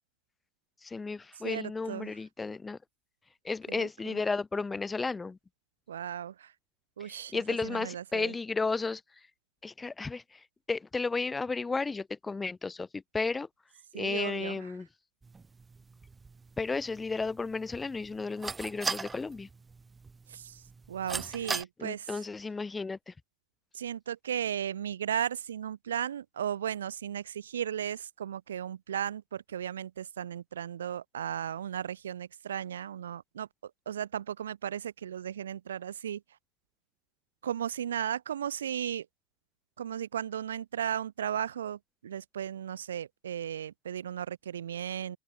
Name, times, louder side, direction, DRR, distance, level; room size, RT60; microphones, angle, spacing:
voice 1, 0.8-2.8 3.4-5.4 7.0-9.0 9.6-13.5 13.9-14.9 16.6-19.5 21.8-23.1, left 4 dB, 15° left, 0.9 m, -33 dB
voice 2, 1.4-2.1 3.7-4.2 5.9-6.5 7.0-8.3 13.9-14.6 20.3-20.6 20.9-22.2 23.7-36.2 37.4-39.1 39.8-45.2, right 9 dB, 90° right, 0.4 m, -35 dB
sound 1, 15.2-21.6, right 4 dB, 15° right, 0.5 m, -40 dB
open air
hypercardioid pair, 105°, 0 cm